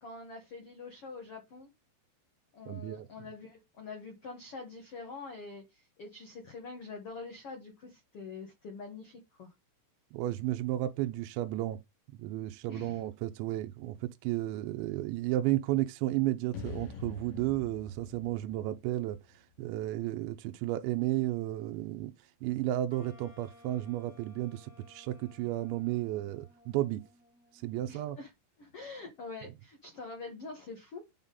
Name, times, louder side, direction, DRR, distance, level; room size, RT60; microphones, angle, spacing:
voice 1, 0.0-1.7 2.5-9.5 12.7-13.0 27.9-28.3 28.6-31.0, left 4 dB, 80° left, 1.3 m, -45 dB
voice 2, 2.7-3.1 10.1-11.8 12.2-27.0 27.5-28.2, right 15 dB, 85° right, 2.8 m, -33 dB
sound 1, 16.5-19.7, left 4 dB, 65° left, 2.5 m, -45 dB
Wind instrument woodwind instrument, 22.9-27.9, left 2 dB, 40° left, 1.2 m, -59 dB
9.5 x 3.7 x 4.0 m
omnidirectional pair, 5.4 m